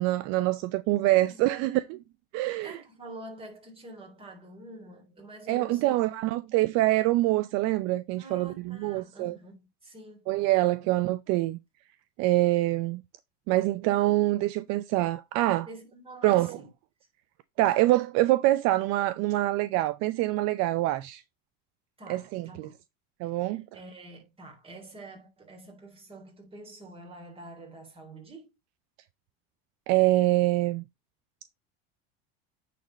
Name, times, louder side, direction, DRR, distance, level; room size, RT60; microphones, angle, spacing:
voice 1, 0.0-1.8 2.3-2.8 5.5-9.4 10.3-11.6 12.2-13.0 13.5-15.7 16.2-16.6 17.6-21.2 22.1-22.7 23.2-23.6 29.9-30.8, right 17 dB, 60° right, 0.6 m, -25 dB
voice 2, 1.1-1.8 2.6-5.9 8.2-10.3 15.7-16.7 17.6-17.8 22.0-22.8 23.2-28.5, right 2 dB, 20° right, 3.5 m, -47 dB
9.4 x 4.4 x 3.9 m
supercardioid pair, 130°, 30 cm